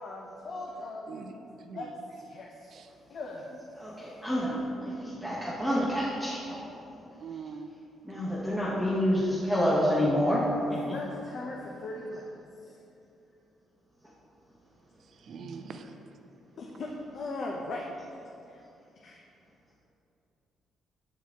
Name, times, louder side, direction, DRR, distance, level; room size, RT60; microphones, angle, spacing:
voice 1, 0.0-1.2 1.7-1.9 2.2-2.8 3.1-3.7 10.9-12.3 12.6-12.8 16.6-18.2 18.5-18.6 19.0-19.2, left 2 dB, 60° left, -1 dB, 0.6 m, -39 dB
voice 2, 1.6-1.9 2.7-2.9 7.2-7.7 15.1-15.9, right 5 dB, 60° right, 6 dB, 0.5 m, -42 dB
voice 3, 3.8-6.6 8.0-10.4 10.7-11.0, equal, 5° left, -8 dB, 1.0 m, -28 dB
7.1 x 4.7 x 3.5 m, 2.8 s
cardioid pair, 90°, 0 cm